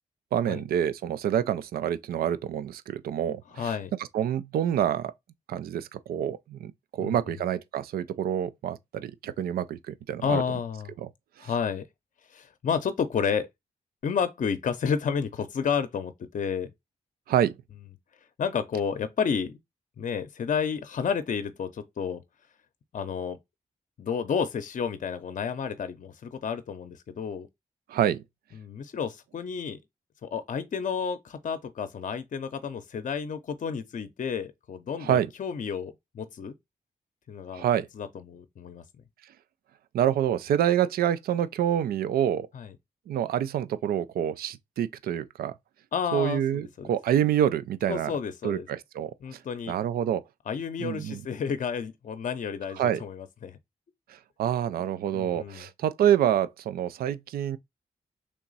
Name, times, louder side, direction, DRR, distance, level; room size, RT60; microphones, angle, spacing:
voice 1, 0.3-3.7 4.0-5.1 5.5-10.4 11.0-11.1 11.4-11.5 17.3-17.5 27.9-28.2 35.0-35.3 37.5-37.9 39.9-42.5 43.1-45.5 46.1-48.1 48.4-49.4 49.7-50.2 50.8-51.2 52.8-53.0 54.1-57.6, right 10 dB, 85° right, 0.4 m, -27 dB
voice 2, 3.6-3.9 7.0-7.1 10.2-10.9 11.4-11.9 12.3-13.5 14.0-16.7 18.4-19.6 20.0-22.2 22.9-23.4 24.0-27.5 28.6-29.8 30.2-36.5 37.3-37.6 38.0-38.8 42.5-42.7 45.9-46.9 47.9-48.7 49.2-49.8 50.5-53.6 54.8-55.7, left 6 dB, 60° left, 0.6 m, -31 dB
3.4 x 3.0 x 3.9 m
cardioid pair, 55°, 15 cm